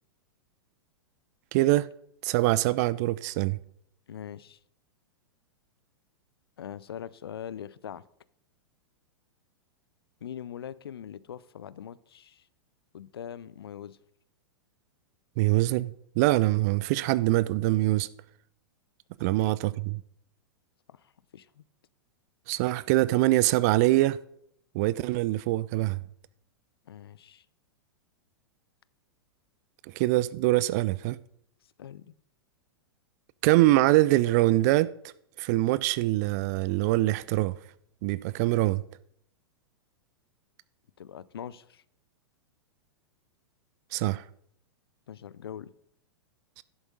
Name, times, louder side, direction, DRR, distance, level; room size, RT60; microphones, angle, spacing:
voice 1, 1.5-1.9 2.2-3.6 15.4-18.1 19.2-20.0 22.5-24.2 24.7-26.0 29.9-31.2 33.4-34.9 35.4-37.6 38.0-38.8 43.9-44.2 46.6-46.7, right 18 dB, 40° right, 0.3 m, -24 dB
voice 2, 4.1-4.6 6.6-8.0 10.2-12.5 12.9-14.0 19.3-19.4 20.9-21.6 26.9-27.4 31.8-32.1 41.0-41.8 45.1-45.7, left 9 dB, 70° left, 0.5 m, -42 dB
11.0 x 7.9 x 3.8 m
figure-of-eight pair, 100°, 13 cm